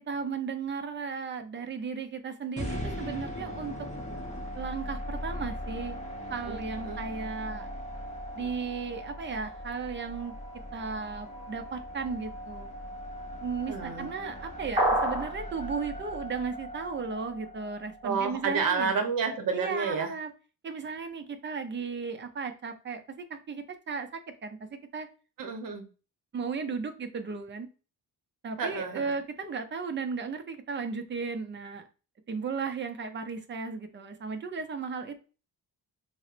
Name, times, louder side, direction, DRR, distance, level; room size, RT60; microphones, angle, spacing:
voice 1, 0.1-3.7 4.5-6.0 6.3-7.7 8.3-10.3 10.7-12.7 13.4-18.9 19.5-20.3 20.6-23.0 23.3-25.1 26.3-27.7 28.4-31.8 32.3-35.2, right 5 dB, 30° right, 7 dB, 0.4 m, -35 dB
sound 1, 2.6-18.7, equal, 15° left, 0.7 m, -39 dB
voice 2, 6.5-7.0 13.7-14.1 18.0-20.1 25.4-25.9 28.6-29.1, right 5 dB, 55° right, 5 dB, 0.8 m, -30 dB
sound 2, 14.8-15.3, right 1 dB, 15° right, 1.0 m, -25 dB
4.0 x 2.1 x 2.4 m, 0.35 s
wide cardioid pair, 135°, 40 cm